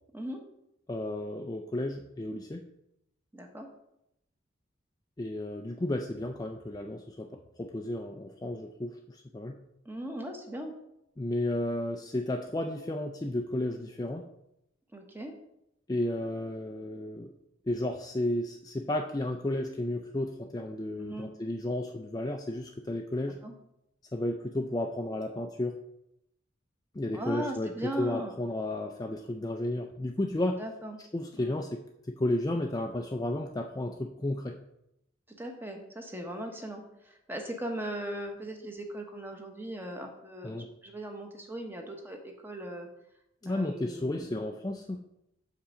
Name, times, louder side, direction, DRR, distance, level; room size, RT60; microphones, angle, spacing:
voice 1, 0.9-2.6 5.2-9.6 11.2-14.2 15.9-17.3 17.7-23.4 24.1-25.8 26.9-30.6 31.1-31.8 32.1-34.5 40.4-40.7 43.4-45.0, left 1 dB, 20° left, 3 dB, 0.4 m, -33 dB
voice 2, 3.3-3.7 9.8-10.7 14.9-15.3 21.0-21.3 23.4-23.5 27.1-28.3 30.6-31.0 31.4-31.6 35.4-42.9 43.4-44.3, right 1 dB, 10° right, 3 dB, 1.0 m, -39 dB
6.7 x 5.7 x 5.0 m, 0.82 s
head